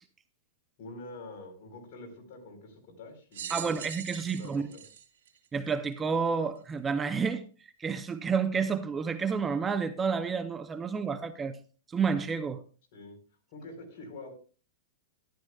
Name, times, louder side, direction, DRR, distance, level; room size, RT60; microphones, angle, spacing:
voice 1, 0.8-3.7 4.4-4.8 12.9-13.2 13.5-14.3, left 2 dB, 55° left, 4.3 m, -46 dB
sound 1, 3.3-6.0 6.7-6.8 7.9-8.0, right 9 dB, 75° right, 2.5 m, -42 dB
voice 2, 3.5-4.7 5.5-7.4 7.8-11.6 11.9-12.6, right 5 dB, 15° right, 0.6 m, -30 dB
13.0 x 11.5 x 2.4 m
hypercardioid pair, 140°, 0 cm